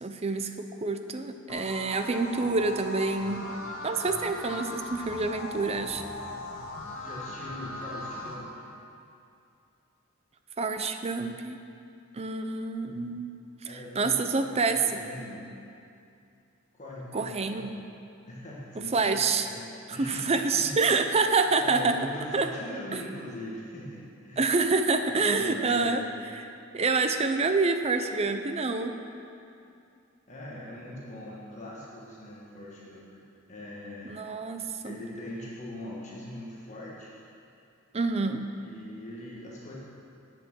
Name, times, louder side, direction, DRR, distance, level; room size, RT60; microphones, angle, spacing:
voice 1, 0.0-3.4 3.8-6.0 10.6-11.6 12.1-13.3 13.7-15.0 17.1-17.8 18.8-19.5 19.9-22.0 22.3-22.5 24.4-26.0 26.3-26.5 26.7-28.9 34.0-35.0 37.9-38.4, right 4 dB, 30° right, 7 dB, 0.5 m, -27 dB
sound 1, 1.5-8.3, left 1 dB, 75° left, 1.7 m, -39 dB
voice 2, 7.0-8.7 13.7-14.4 14.7-15.5 16.7-17.7 18.3-19.2 19.5-20.8 21.6-24.5 25.2-26.1 30.3-33.2 33.5-34.2 34.8-37.1 38.6-39.8, left 1 dB, 35° left, -5 dB, 1.5 m, -41 dB
8.7 x 7.4 x 6.3 m, 2.6 s
head